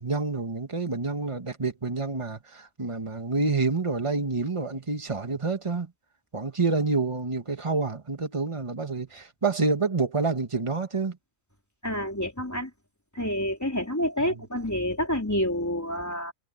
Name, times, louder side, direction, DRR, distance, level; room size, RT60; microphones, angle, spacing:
voice 1, 0.0-5.9 6.3-11.2, right 3 dB, 25° right, 1.6 m, -28 dB
voice 2, 11.8-12.7 13.1-16.3, equal, 10° left, 4.3 m, -28 dB
omnidirectional pair, 1.4 m